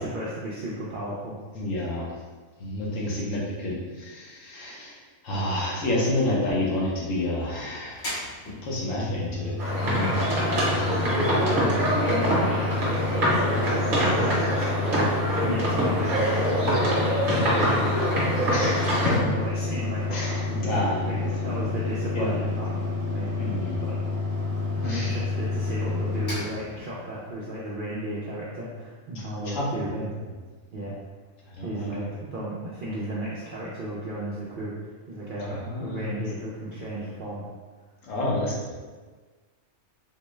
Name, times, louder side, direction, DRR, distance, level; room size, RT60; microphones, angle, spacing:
voice 1, 0.0-1.4 11.0-22.8 23.0-23.3 23.8-24.0 24.7-30.1 30.7-30.9 31.6-34.7 35.1-37.4, right 1 dB, 65° right, -7 dB, 0.5 m, -34 dB
voice 2, 1.5-2.1 2.6-4.9 5.2-8.1 8.6-9.5 9.9-10.2 10.7-11.0 18.5-19.2 20.1-21.5 22.1-22.4 23.4-23.8 24.9-25.1 29.1-29.7 31.6-32.1 35.4-36.2 38.0-38.7, left 1 dB, 70° left, -4 dB, 1.1 m, -29 dB
Mechanical fan, 7.9-27.3, left 3 dB, 85° left, 2.1 m, -29 dB
sound 1, 9.6-19.2, equal, 45° right, 1.0 m, -25 dB
3.8 x 2.1 x 3.0 m, 1.4 s
omnidirectional pair, 1.4 m